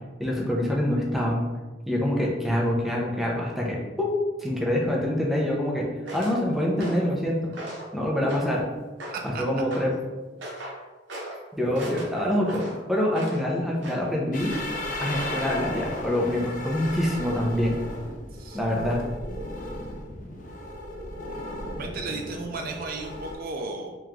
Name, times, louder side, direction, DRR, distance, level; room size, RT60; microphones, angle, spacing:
voice 1, 0.2-1.5 1.9-4.1 4.4-5.9 6.1-7.5 7.9-8.6 9.4-9.9 11.6-14.5 15.0-17.8 18.5-19.0, left 1 dB, ahead, -3 dB, 0.7 m, -25 dB
sound 1, 6.1-6.4 6.8-7.1 7.5-7.9 8.3-8.6 9.0-9.3 9.7-9.9 10.4-10.8 11.1-11.4 11.7-13.4 13.8-14.1 14.5-14.9 15.2-15.4, right 1 dB, 75° right, 1.1 m, -38 dB
voice 2, 9.1-9.5 18.3-18.6 21.8-24.0, right 3 dB, 50° right, 3 dB, 0.4 m, -34 dB
sound 2, 14.3-23.4, left 1 dB, 45° left, 0.6 m, -35 dB
3.6 x 3.0 x 3.6 m, 1.2 s
head